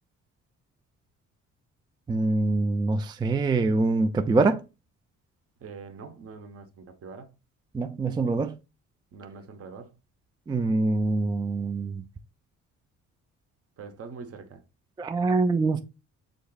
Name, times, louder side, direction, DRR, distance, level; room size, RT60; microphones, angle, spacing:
voice 1, 2.1-4.6 7.7-8.6 10.5-12.0 15.0-15.8, right 3 dB, 15° right, 0.3 m, -24 dB
voice 2, 5.6-7.3 9.1-9.9 13.8-14.6, right 5 dB, 50° right, 0.9 m, -43 dB
5.2 x 3.7 x 2.3 m
cardioid pair, 90°, 30 cm